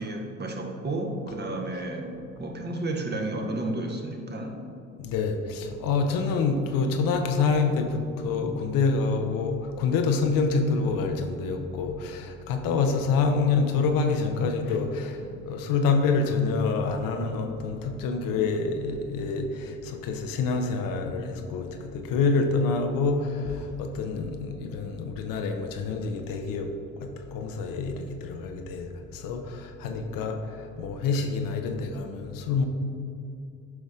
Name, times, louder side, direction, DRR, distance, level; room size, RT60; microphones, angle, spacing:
voice 1, 0.0-2.1 2.4-4.6, right 2 dB, 25° right, 2 dB, 1.1 m, -32 dB
voice 2, 5.0-26.7 27.0-32.7, left 4 dB, 60° left, 5 dB, 0.8 m, -27 dB
7.9 x 5.2 x 3.6 m, 2.6 s
hypercardioid pair, 55°, 37 cm